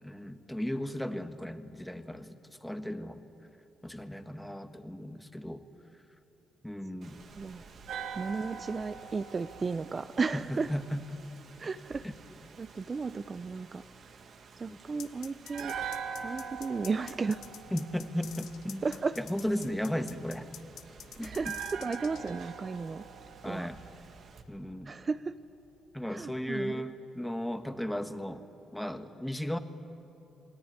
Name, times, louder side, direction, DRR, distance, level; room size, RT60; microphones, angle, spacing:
voice 1, 0.0-3.2 3.8-5.6 6.6-7.2 10.3-11.2 12.0-12.1 14.7-14.8 17.7-18.9 19.2-20.5 21.1-21.6 23.4-23.8 24.5-24.9 25.9-28.4 28.7-29.6, equal, 5° left, 7 dB, 1.6 m, -35 dB
Rain, 7.0-24.4, right 5 dB, 55° right, 2.3 m, -54 dB
sound 1, 7.9-11.0 15.4-18.7 21.3-24.5 24.8-24.9, right 7 dB, 80° right, 2.8 m, -42 dB
voice 2, 8.1-10.7 11.6-12.0 12.6-13.8 14.6-15.8 16.2-17.5 18.8-19.2 21.2-23.0 23.4-23.7 24.9-25.3 26.1-26.8, right 4 dB, 35° right, 12 dB, 0.6 m, -34 dB
sound 2, 15.0-22.3, left 10 dB, 75° left, 1.3 m, -47 dB
28.0 x 20.5 x 9.7 m, 2.9 s
cardioid pair, 90°, 0 cm